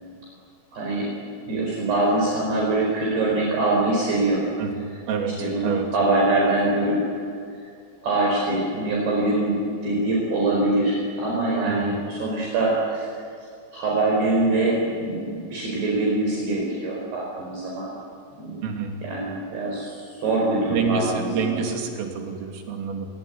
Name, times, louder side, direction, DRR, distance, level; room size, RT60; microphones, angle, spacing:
voice 1, 0.7-1.1 1.5-4.4 5.4-7.2 8.0-13.1 13.7-17.9 18.4-18.6 19.0-21.6, right 2 dB, 55° right, -3 dB, 6.7 m, -23 dB
voice 2, 11.7-12.0 18.6-18.9 20.7-23.1, right 6 dB, 90° right, 2 dB, 5.6 m, -27 dB
28.5 x 22.0 x 9.5 m, 2.3 s
omnidirectional pair, 5.7 m